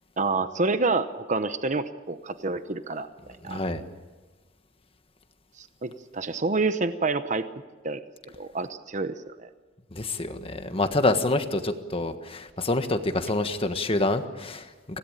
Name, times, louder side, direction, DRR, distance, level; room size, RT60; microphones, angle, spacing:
voice 1, 0.2-3.1 3.4-3.6 5.6-7.5 7.8-8.0 8.4-9.5, right 3 dB, 40° right, 10 dB, 0.9 m, -28 dB
voice 2, 3.4-3.8 9.9-15.0, left 2 dB, 30° left, 8 dB, 1.5 m, -27 dB
26.0 x 17.5 x 9.0 m, 1.3 s
head